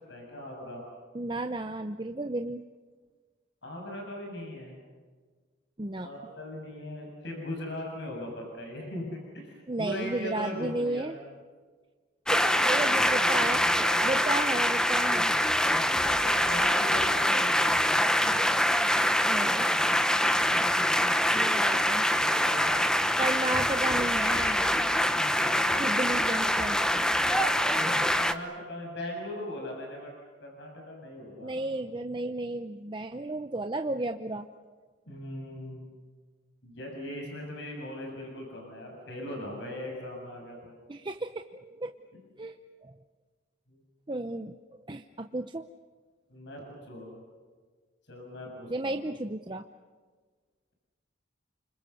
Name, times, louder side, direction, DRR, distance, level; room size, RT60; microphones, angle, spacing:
voice 1, 0.1-0.8 3.6-4.8 6.0-11.2 12.3-14.4 16.0-17.7 21.6-22.8 25.2-26.0 26.3-26.4 27.7-30.1 30.4-31.5 35.1-35.9 36.6-40.7 43.7-43.8 46.3-47.2 48.1-49.0, left 1 dB, 65° left, 1 dB, 7.2 m, -39 dB
voice 2, 1.1-2.6 5.8-6.1 9.7-11.2 12.3-15.3 19.3-19.7 21.3-22.0 23.2-24.7 25.8-27.0 31.4-34.8 40.9-41.9 42.4-42.9 44.1-45.7 48.7-49.6, right 2 dB, 25° right, 7 dB, 0.8 m, -33 dB
sound 1, 12.3-28.3, equal, 5° left, 1.0 m, -25 dB
29.5 x 26.0 x 7.1 m, 1.5 s
head